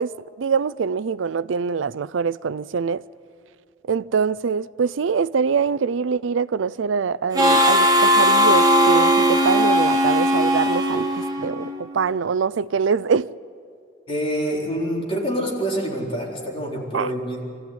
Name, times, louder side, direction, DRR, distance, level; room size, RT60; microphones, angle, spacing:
voice 1, 0.0-3.0 3.9-13.3 16.9-17.1, right 5 dB, 75° right, 0.4 m, -24 dB
Harmonica, 7.3-11.8, equal, 20° right, 1.5 m, -18 dB
voice 2, 14.1-17.4, equal, 30° left, 4.1 m, -26 dB
25.0 x 14.5 x 9.5 m
head